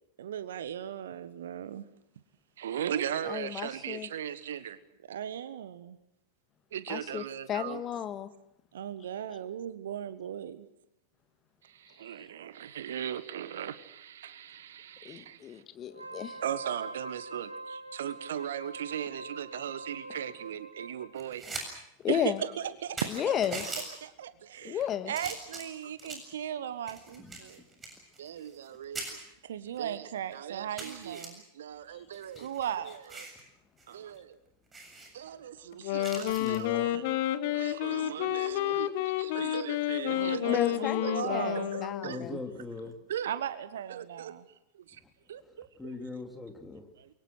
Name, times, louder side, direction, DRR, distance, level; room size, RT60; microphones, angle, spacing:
voice 1, 0.2-1.9 2.6-4.8 5.1-6.0 6.7-7.8 8.7-10.7 11.6-15.6 16.4-21.4 22.1-23.6 24.0-27.6 28.2-33.3 33.9-34.4 35.1-37.0 37.5-42.2 43.1-44.5 44.7-45.0 45.3-45.9 47.0-47.1, right 9 dB, 60° right, 1.4 m, -37 dB
voice 2, 3.2-4.1 6.9-8.3 15.0-16.4 22.0-22.4 23.1-23.6 24.6-25.1 32.4-32.5 40.5-42.4, left 10 dB, 30° left, 1.7 m, -33 dB
Wind instrument woodwind instrument, 15.9-21.1, right 2 dB, 80° right, 1.6 m, -44 dB
sound 1, 21.2-21.7 22.0-22.1 22.6-22.7 23.0-23.9 24.6-24.8 25.1-26.3 26.9-28.7 28.9-29.1 29.8-29.9 30.2-30.3 30.8-31.3 32.1-33.4 33.8-33.9 34.2-34.3 34.7-35.1 36.0-36.6 38.3-38.5, right 3 dB, 15° right, 7.3 m, -41 dB
voice 3, 27.2-27.5 28.7-28.8 36.4-37.0 42.0-43.0 44.9-45.1 45.4-46.9, left 3 dB, 10° left, 3.6 m, -41 dB
Wind instrument woodwind instrument 2, 35.7-42.3, left 14 dB, 50° left, 1.3 m, -30 dB
29.0 x 23.5 x 6.4 m
figure-of-eight pair, 90°, 0 cm